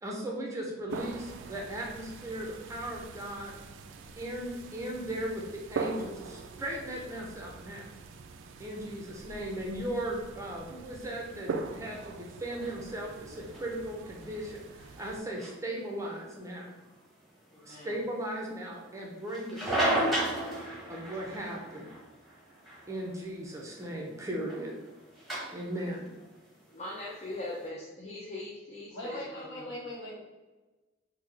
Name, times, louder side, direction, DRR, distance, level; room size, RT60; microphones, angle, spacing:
voice 1, 0.0-3.5 4.2-7.9 8.6-16.8 17.6-20.2 20.9-21.9 22.9-24.7 25.5-26.1, right 1 dB, 15° right, -2 dB, 0.5 m, -37 dB
sound 1, 0.9-15.2, right 4 dB, 65° right, 0.3 m, -42 dB
sound 2, 12.5-27.6, right 1 dB, ahead, 0.9 m, -37 dB
voice 2, 17.5-18.0 21.2-21.4 26.7-29.8, left 2 dB, 35° left, -4 dB, 0.5 m, -41 dB
voice 3, 28.9-30.2, equal, 65° left, -5 dB, 1.2 m, -40 dB
3.7 x 2.1 x 3.2 m, 1.2 s
head